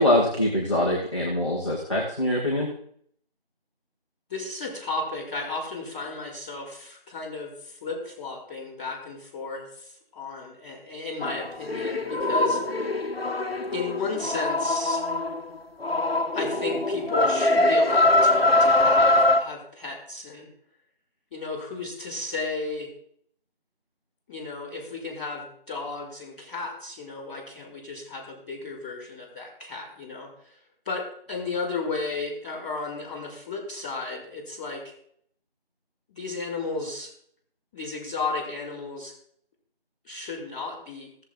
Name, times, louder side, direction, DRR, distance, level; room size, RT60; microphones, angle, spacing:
voice 1, 0.0-2.7, left 1 dB, 30° left, -6 dB, 1.8 m, -23 dB
voice 2, 4.3-12.6 13.7-15.0 16.3-20.5 21.3-22.9 24.3-30.6 30.8-34.8 36.1-37.1 37.7-39.1 40.0-41.1, left 3 dB, 10° left, -17 dB, 4.2 m, -34 dB
sound 1, 11.2-15.5 15.8-19.4, left 2 dB, 75° left, 1.3 m, -23 dB
16.5 x 7.6 x 3.8 m, 0.64 s
figure-of-eight pair, 175°, 30 cm